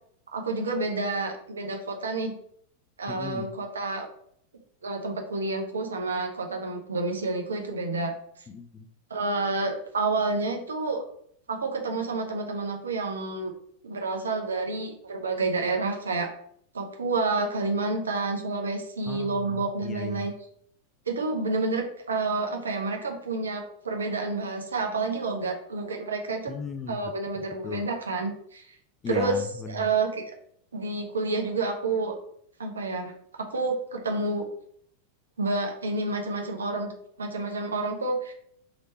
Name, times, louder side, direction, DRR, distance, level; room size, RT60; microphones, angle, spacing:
voice 1, 0.3-2.3 3.0-4.1 4.8-8.1 9.1-11.0 11.5-13.5 13.8-16.3 16.7-20.3 21.1-26.5 26.9-28.8 29.1-29.4 29.7-30.2 30.7-32.2 32.6-33.1 33.4-34.5 35.4-36.9 37.2-38.3, right 3 dB, 70° right, 0.7 m, -29 dB
voice 2, 3.1-3.5 8.5-8.9 19.1-20.3 26.5-27.9 29.0-29.9, left 6 dB, 25° left, 0.3 m, -36 dB
3.2 x 2.9 x 4.2 m
figure-of-eight pair, 90°, 0 cm